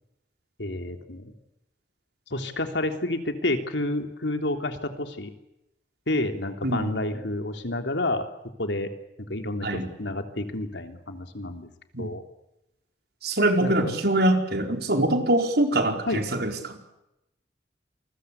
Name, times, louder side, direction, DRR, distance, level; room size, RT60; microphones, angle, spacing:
voice 1, 0.6-1.3 2.3-5.3 6.1-8.2 8.6-8.9 9.3-11.7 12.0-12.2 13.6-14.0 16.1-16.2, left 1 dB, 85° left, 6 dB, 3.4 m, -29 dB
voice 2, 6.6-7.0 9.6-9.9 11.9-12.1 13.2-16.9, right 1 dB, 65° right, 4 dB, 4.7 m, -24 dB
28.0 x 22.0 x 8.4 m, 0.87 s
head